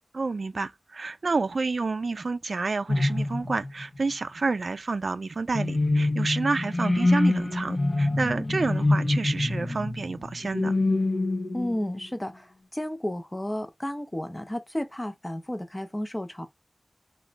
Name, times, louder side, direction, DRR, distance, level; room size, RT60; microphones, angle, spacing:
voice 1, 0.1-10.7, right 3 dB, 75° right, 0.3 m, -29 dB
sound 1, 2.9-4.0 5.5-12.0, left 2 dB, 60° left, 0.9 m, -25 dB
voice 2, 11.5-16.5, left 1 dB, 20° left, 0.6 m, -32 dB
3.1 x 2.2 x 3.8 m
wide cardioid pair, 75°, 0 cm